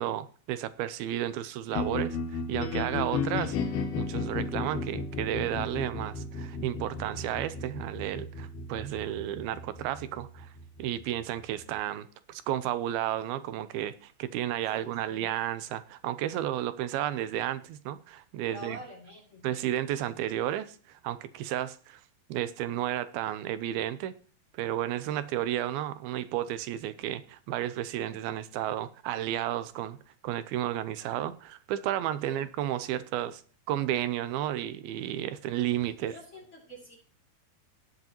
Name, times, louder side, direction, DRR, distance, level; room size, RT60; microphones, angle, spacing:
voice 1, 0.0-10.5 10.8-18.8 19.4-22.0 22.3-24.1 24.5-30.0 30.2-33.4 33.7-36.2, right 12 dB, 80° right, 2.5 m, -32 dB
sound 1, 1.7-11.8, left 4 dB, 90° left, 3.2 m, -35 dB
voice 2, 14.7-15.2 18.5-19.6 32.2-32.4 35.8-37.0, equal, 20° left, 2.3 m, -47 dB
18.5 x 8.1 x 2.9 m
omnidirectional pair, 4.4 m